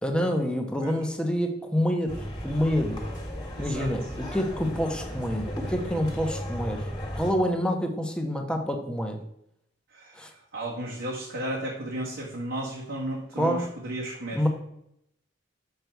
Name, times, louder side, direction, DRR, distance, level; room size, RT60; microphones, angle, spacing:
voice 1, 0.0-3.0 3.6-6.8 7.1-9.2 10.2-10.3 13.4-13.7 14.3-14.5, equal, 5° left, 3 dB, 0.9 m, -27 dB
sound 1, 2.1-7.3, equal, 20° left, 1.7 m, -35 dB
voice 2, 3.6-3.9 9.9-14.5, right 1 dB, 70° right, -5 dB, 1.5 m, -34 dB
6.7 x 6.4 x 4.6 m, 0.77 s
head